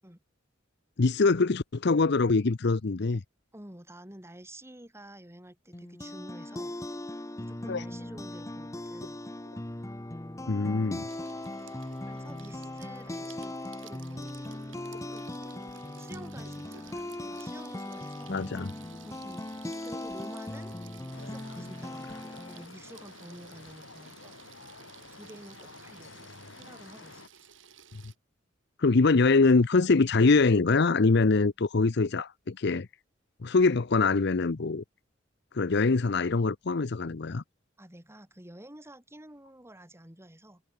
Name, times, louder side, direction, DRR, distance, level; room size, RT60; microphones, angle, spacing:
voice 1, 1.0-3.2 7.7-7.8 10.5-11.1 18.3-18.7 28.8-32.9 33.4-34.8 35.5-37.4, left 3 dB, 60° left, 0.7 m, -24 dB
voice 2, 3.5-6.7 7.4-9.2 12.1-13.6 13.8-14.6 15.1-15.2 16.0-18.4 19.0-20.7 21.2-24.4 25.1-27.5 37.8-40.6, right 1 dB, 15° right, 3.6 m, -50 dB
sound 1, 5.7-22.7, left 1 dB, 15° left, 0.9 m, -39 dB
Water tap faucet / Sink (filling or washing), 11.1-28.2, right 6 dB, 85° right, 6.7 m, -54 dB
sound 2, 21.1-27.3, left 3 dB, 85° left, 3.4 m, -50 dB
head